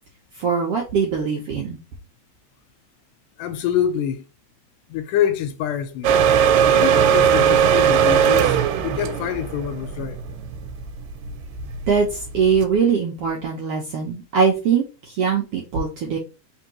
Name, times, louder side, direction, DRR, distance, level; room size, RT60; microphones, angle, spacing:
voice 1, 0.4-1.8 11.9-16.2, right 6 dB, 70° right, 1.4 m, -22 dB
voice 2, 3.4-4.3 4.9-6.1 6.7-8.6 8.8-10.2, left 9 dB, 80° left, 2.1 m, -25 dB
sound 1, 6.0-12.6, right 8 dB, 90° right, 2.4 m, -18 dB
4.6 x 3.6 x 2.8 m
omnidirectional pair, 3.9 m